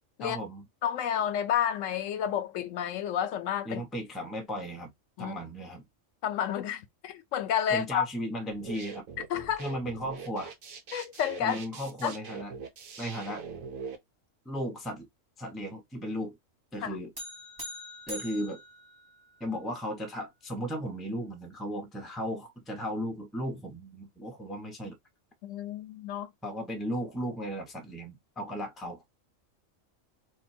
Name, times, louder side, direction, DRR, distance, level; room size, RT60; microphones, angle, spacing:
voice 1, 0.2-0.7 3.6-4.9 5.2-5.8 7.7-9.1 9.6-10.5 11.4-12.5 13.0-13.4 14.5-15.1 15.4-16.4 16.7-17.1 18.1-18.6 19.4-25.0 26.4-29.0, equal, ahead, 0.6 m, -35 dB
voice 2, 0.8-3.8 5.2-5.4 6.2-8.1 9.3-9.6 10.9-11.6 12.0-12.1 16.8-17.0 25.4-26.3, left 9 dB, 75° left, 0.9 m, -30 dB
sound 1, 8.5-14.0, right 5 dB, 85° right, 1.2 m, -43 dB
sound 2, 17.2-19.6, left 1 dB, 20° right, 1.1 m, -43 dB
3.0 x 2.5 x 4.2 m
omnidirectional pair, 1.3 m